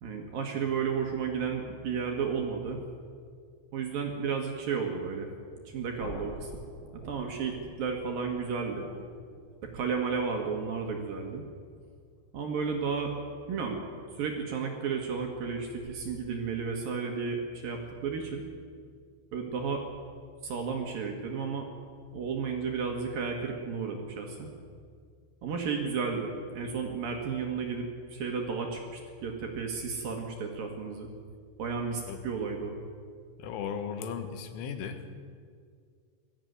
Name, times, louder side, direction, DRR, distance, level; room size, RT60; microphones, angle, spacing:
voice 1, 0.0-2.8 3.7-5.3 5.7-6.5 6.9-8.9 9.7-11.4 12.3-13.1 13.5-13.8 14.2-18.4 19.3-19.8 20.4-21.7 22.1-24.5 25.4-31.1 31.6-32.8, right 5 dB, 60° right, 2 dB, 2.9 m, -33 dB
sound 1, 6.0-11.9, left 1 dB, 30° left, 3.0 m, -48 dB
voice 2, 33.4-35.0, left 7 dB, 85° left, 8 dB, 3.9 m, -36 dB
20.5 x 14.0 x 9.5 m, 2.1 s
omnidirectional pair, 5.6 m